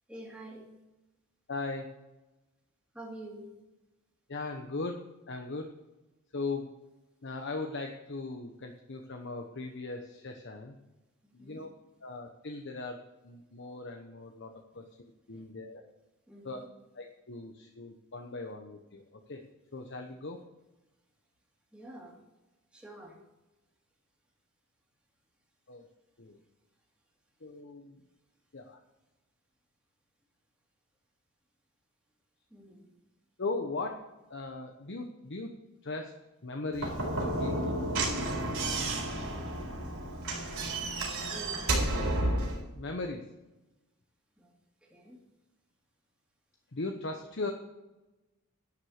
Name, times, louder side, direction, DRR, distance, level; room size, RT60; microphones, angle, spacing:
voice 1, 0.1-0.7 2.9-3.5 11.2-11.6 15.3-15.5 16.3-16.6 21.7-22.2 22.7-23.1 32.5-32.9 38.9-39.5 41.1-41.9 44.4-44.5 44.8-45.2, right 1 dB, 5° right, -3 dB, 2.8 m, -48 dB
voice 2, 1.5-1.9 4.3-5.0 5.3-5.8 6.3-6.7 7.2-10.8 11.3-11.7 12.0-15.8 16.4-16.6 16.9-19.4 19.7-20.4 25.7-25.9 26.2-26.4 27.4-28.0 28.5-28.8 33.4-35.6 35.8-36.2 36.4-37.7 42.7-43.3 46.7-47.5, left 3 dB, 55° left, 3 dB, 1.0 m, -39 dB
Slam / Knock, 36.7-42.6, right 2 dB, 70° right, 4.2 m, -31 dB
11.5 x 7.3 x 6.5 m, 1.0 s
head